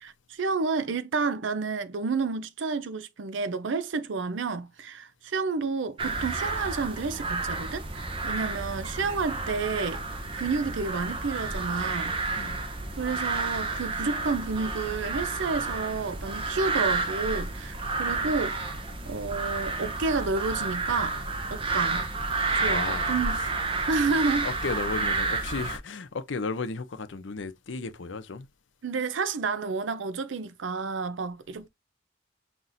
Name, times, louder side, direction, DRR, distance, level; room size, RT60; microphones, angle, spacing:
voice 1, 0.0-10.0 10.3-12.2 12.4-12.5 13.0-18.6 19.1-21.2 21.5-22.1 22.6-23.4 23.9-24.5 28.8-31.7, right 4 dB, 80° right, 0.5 m, -30 dB
sound 1, 6.0-25.8, right 3 dB, 30° right, 0.7 m, -30 dB
voice 2, 12.3-12.7 18.2-18.3 21.6-21.8 22.5-23.5 24.4-28.5, left 4 dB, 80° left, 0.7 m, -35 dB
5.7 x 3.0 x 2.6 m
head